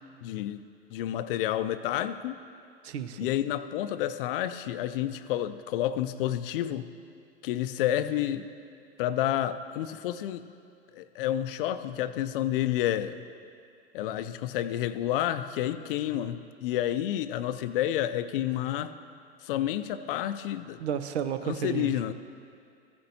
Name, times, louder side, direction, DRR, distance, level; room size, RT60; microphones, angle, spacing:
voice 1, 0.2-0.6 0.9-2.4 3.2-6.9 7.4-8.5 9.0-10.5 10.9-13.2 13.9-18.9 19.4-20.8 21.5-22.1, left 12 dB, 55° left, 12 dB, 0.5 m, -30 dB
voice 2, 2.8-3.3 20.8-21.9, right 8 dB, 75° right, 10 dB, 0.7 m, -32 dB
14.5 x 8.7 x 2.8 m, 2.4 s
hypercardioid pair, 110°, 33 cm